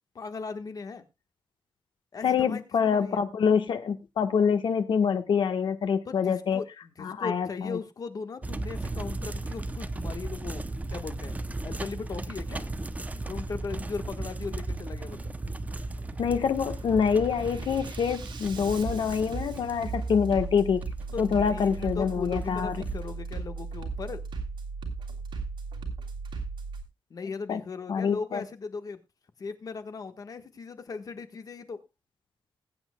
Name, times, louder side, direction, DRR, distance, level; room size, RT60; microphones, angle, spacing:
voice 1, 0.1-1.0 2.1-3.2 6.1-10.6 10.9-11.3 11.6-12.7 13.3-15.3 21.1-24.2 27.1-29.0 29.4-31.8, left 4 dB, 50° left, 8 dB, 1.4 m, -38 dB
voice 2, 2.2-6.6 7.0-7.8 16.2-20.8 21.2-22.8 27.5-27.6 27.9-28.4, left 6 dB, 75° left, 8 dB, 1.3 m, -26 dB
sound 1, 8.4-23.0, right 2 dB, 20° right, 0.7 m, -36 dB
Bass drum, 11.0-11.2 11.7-12.2 13.0-13.2 13.7-14.2 15.0-15.2 15.7-16.2 16.6-26.8, right 4 dB, 75° right, 3.2 m, -37 dB
20.5 x 8.9 x 2.3 m, 0.25 s
wide cardioid pair, 150°, 8 cm